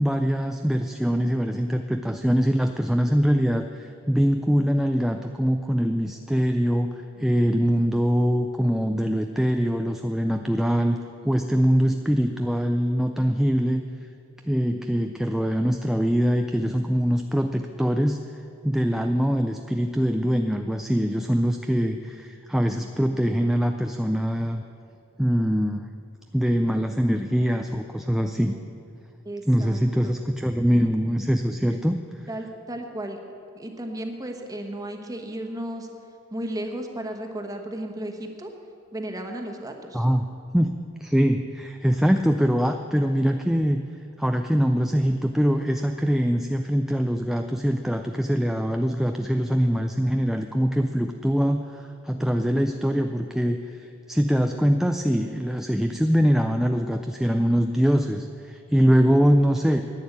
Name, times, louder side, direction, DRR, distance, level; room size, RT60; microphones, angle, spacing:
voice 1, 0.0-11.0 11.2-13.8 14.4-18.2 18.6-24.6 25.2-25.8 26.3-28.6 29.5-32.0 39.9-40.2 40.5-40.7 41.0-43.8 44.2-59.8, equal, ahead, 5 dB, 0.4 m, -23 dB
voice 2, 29.2-30.2 32.3-33.2 33.5-35.9 36.3-38.5 38.9-40.0, right 1 dB, 15° right, 4 dB, 1.2 m, -34 dB
10.5 x 9.5 x 8.5 m, 2.6 s
head